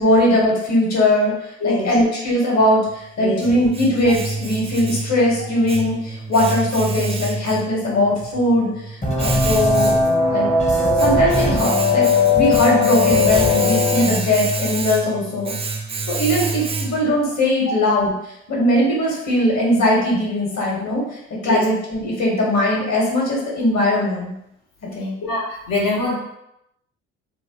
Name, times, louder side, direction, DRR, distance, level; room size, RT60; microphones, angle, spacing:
voice 1, 0.0-1.3 1.6-8.7 9.2-9.9 10.3-10.5 11.0-12.1 12.3-15.5 16.1-18.1 18.5-21.0 21.4-24.3 24.9-25.1, left 1 dB, 50° left, -3 dB, 1.4 m, -19 dB
voice 2, 1.6-1.9 3.2-3.4 12.7-12.8 17.7-17.8 21.4-21.6 25.2-26.2, left 2 dB, 65° left, -3 dB, 1.1 m, -24 dB
Domestic sounds home sounds, 2.9-17.2, right 3 dB, 20° right, 0.3 m, -28 dB
sound 1, 9.0-14.0, left 3 dB, 20° left, 0.8 m, -18 dB
3.0 x 2.1 x 2.9 m, 0.80 s
hypercardioid pair, 50°, 35 cm